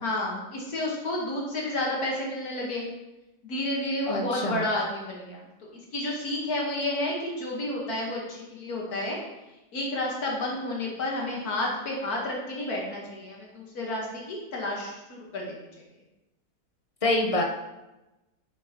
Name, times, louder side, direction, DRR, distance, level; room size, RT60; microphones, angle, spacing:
voice 1, 0.0-2.9 3.4-5.5 5.9-9.2 9.7-15.6, left 1 dB, 70° left, -2 dB, 1.8 m, -31 dB
voice 2, 4.1-4.6 17.0-17.4, left 2 dB, 35° left, 1 dB, 0.6 m, -25 dB
7.8 x 7.2 x 2.9 m, 1.0 s
omnidirectional pair, 1.7 m